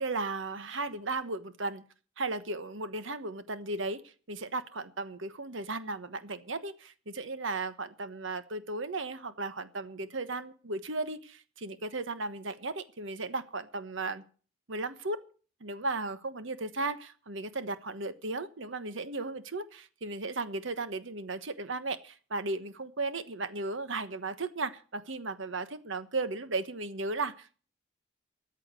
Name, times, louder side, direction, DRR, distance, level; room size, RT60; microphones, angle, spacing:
voice 1, 0.0-1.8 2.2-14.2 14.7-15.2 15.6-27.6, right 3 dB, 75° right, 12 dB, 1.2 m, -35 dB
14.0 x 8.3 x 8.0 m, 0.40 s
head